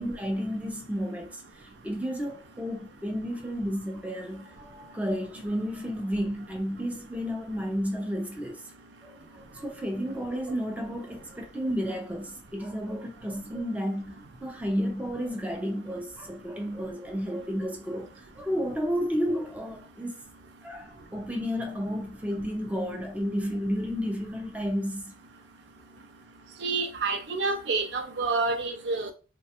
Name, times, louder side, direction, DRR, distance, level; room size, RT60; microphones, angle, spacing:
voice 1, 0.0-8.6 9.0-14.1 14.4-20.2 20.6-25.1, equal, 10° right, 0.4 m, -32 dB
voice 2, 26.6-29.1, right 3 dB, 65° right, 0.5 m, -28 dB
3.2 x 2.2 x 2.8 m
head